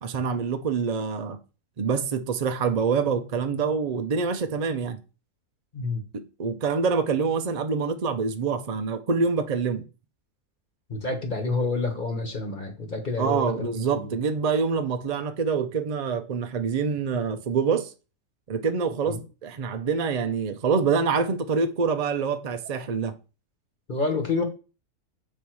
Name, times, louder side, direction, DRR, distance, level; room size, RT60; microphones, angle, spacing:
voice 1, 0.0-1.4 1.8-5.0 6.1-9.8 13.2-17.9 18.5-23.1, right 5 dB, 60° right, 0.4 m, -26 dB
voice 2, 10.9-14.2 19.1-19.2 23.9-24.4, left 3 dB, 35° left, 1.2 m, -28 dB
7.0 x 4.4 x 4.6 m
omnidirectional pair, 1.5 m